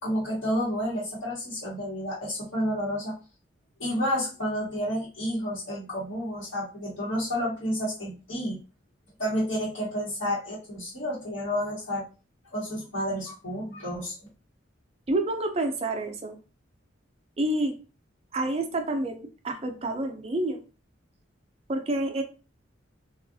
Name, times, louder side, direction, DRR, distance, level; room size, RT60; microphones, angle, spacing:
voice 1, 0.0-3.1 3.8-8.6 9.2-12.0 12.5-14.3, equal, 75° left, -7 dB, 1.1 m, -30 dB
voice 2, 15.1-16.4 17.4-17.7 18.3-20.6 21.7-22.2, right 2 dB, 30° right, 5 dB, 0.4 m, -28 dB
3.5 x 2.4 x 2.6 m, 0.33 s
head